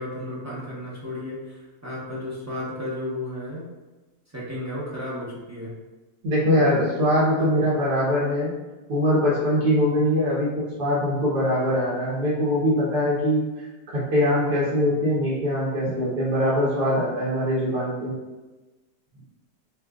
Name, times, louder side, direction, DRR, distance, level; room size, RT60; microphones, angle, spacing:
voice 1, 0.0-3.7 4.3-5.7 6.5-6.8 7.4-7.5, left 1 dB, 15° right, -8 dB, 0.6 m, -33 dB
voice 2, 6.2-8.5 8.9-10.5 10.8-13.4 13.9-18.1, equal, 70° right, -8 dB, 1.7 m, -22 dB
6.1 x 2.5 x 2.4 m, 1.1 s
omnidirectional pair, 1.8 m